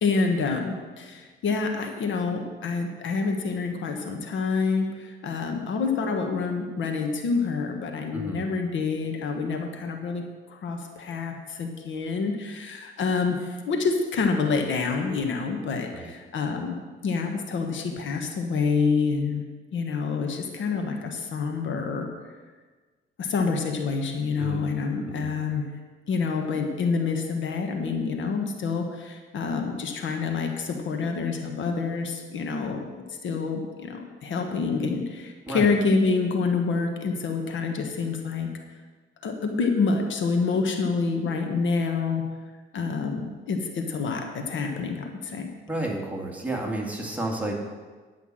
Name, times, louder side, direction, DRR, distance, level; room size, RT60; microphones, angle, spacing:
voice 1, 0.0-10.2 10.5-16.8 17.0-19.4 19.7-22.1 23.2-25.7 26.1-32.8 33.2-38.5 39.2-42.2 42.7-45.5, left 4 dB, 70° left, 4 dB, 1.4 m, -27 dB
voice 2, 8.1-8.5 15.9-16.1 24.4-24.8 25.0-25.3 35.5-35.7 45.7-47.7, right 1 dB, 5° right, -1 dB, 2.2 m, -31 dB
10.5 x 5.8 x 7.6 m, 1.4 s
cardioid pair, 90°, 20 cm